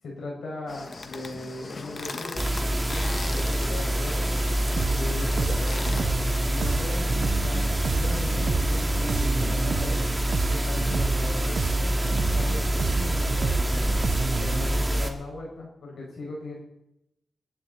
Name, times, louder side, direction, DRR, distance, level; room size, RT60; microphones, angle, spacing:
voice 1, 0.0-2.5 2.9-4.3 5.0-7.7 8.0-10.0 10.5-13.8 14.4-16.6, left 2 dB, 80° left, -2 dB, 5.4 m, -38 dB
sound 1, 0.7-6.0, left 3 dB, 50° left, 1.4 m, -39 dB
sound 2, 2.4-15.1, right 1 dB, 15° right, 2.3 m, -26 dB
sound 3, 4.8-14.7, right 6 dB, 85° right, 0.5 m, -31 dB
24.0 x 11.5 x 4.0 m, 0.84 s
cardioid pair, 70°, 0 cm